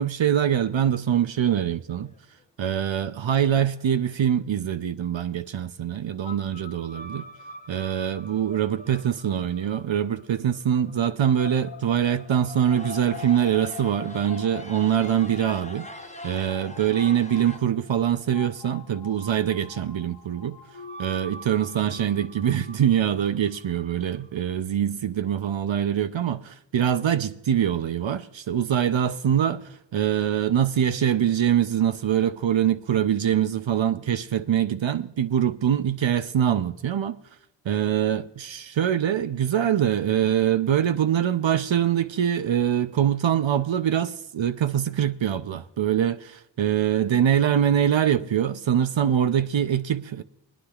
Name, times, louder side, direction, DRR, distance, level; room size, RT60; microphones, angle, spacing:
voice 1, 0.0-2.1 2.6-7.3 7.7-15.9 16.2-20.6 21.0-37.2 37.7-50.2, right 9 dB, 85° right, 0.6 m, -24 dB
sound 1, 2.0-2.4 2.9-3.0 3.3-3.9 7.1-7.2 8.3-8.4 8.7-9.0 9.5-9.6 10.3-10.4 10.7-10.8 11.3-11.7 12.3-17.6, left 2 dB, 15° left, 0.9 m, -44 dB
sound 2, 6.2-24.4, left 4 dB, 75° left, 0.9 m, -44 dB
23.5 x 9.9 x 2.3 m
wide cardioid pair, 45°, 44 cm